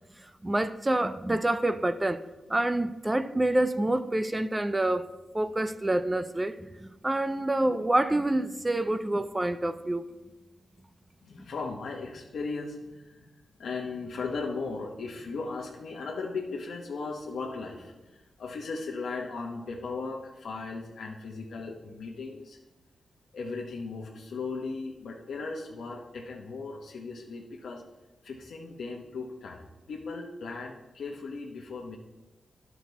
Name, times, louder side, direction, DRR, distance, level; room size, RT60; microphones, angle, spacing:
voice 1, 0.2-2.2 2.5-5.0 5.3-10.0, right 1 dB, 15° right, 0.4 m, -27 dB
voice 2, 11.2-13.3 13.6-22.6 23.3-27.8 28.2-29.6 29.9-32.0, left 4 dB, 80° left, 0.9 m, -37 dB
11.0 x 6.0 x 4.0 m
wide cardioid pair, 125°, 0 cm